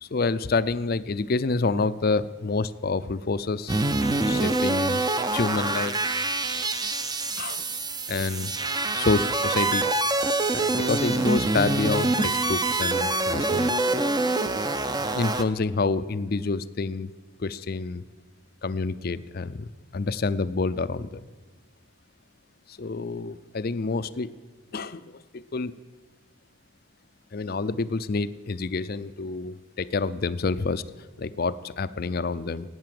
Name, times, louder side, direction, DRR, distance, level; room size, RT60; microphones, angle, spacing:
voice 1, 0.0-3.8 4.2-5.0 5.3-6.0 6.6-6.7 7.3-7.6 8.1-8.5 8.9-9.9 10.5-13.7 15.1-17.1 17.4-18.0 18.6-21.2 22.7-24.3 24.7-25.7 27.3-30.8 31.2-32.7, left 3 dB, 45° left, 15 dB, 0.5 m, -28 dB
sound 1, 3.7-15.4, right 2 dB, 20° right, 0.6 m, -25 dB
17.0 x 9.5 x 7.7 m, 1.3 s
head